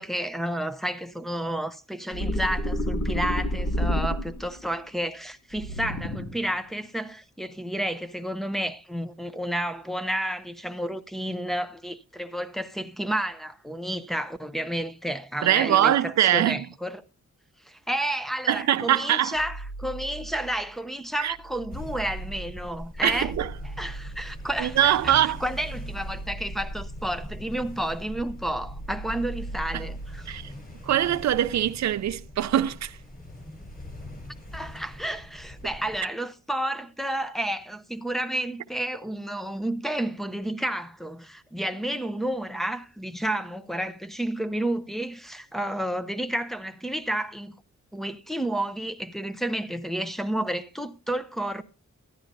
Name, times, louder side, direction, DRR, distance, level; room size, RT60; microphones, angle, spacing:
voice 1, 0.0-17.0 17.7-23.3 23.8-30.3 34.5-47.6 47.9-51.6, right 1 dB, ahead, 0.6 m, -31 dB
sound 1, 2.1-4.6 5.5-6.5, equal, 60° left, 2.6 m, -28 dB
voice 2, 15.4-16.7 18.5-19.3 21.2-21.4 23.0-23.5 24.6-25.4 29.7-29.8 30.3-30.5 30.8-33.0, right 11 dB, 65° right, 0.5 m, -23 dB
sound 2, 19.3-20.8 21.2-27.7 28.0-30.3, right 2 dB, 85° left, 2.2 m, -40 dB
sound 3, 21.7-36.0, left 1 dB, 30° left, 6.8 m, -42 dB
14.5 x 10.0 x 2.6 m
wide cardioid pair, 110°, 30 cm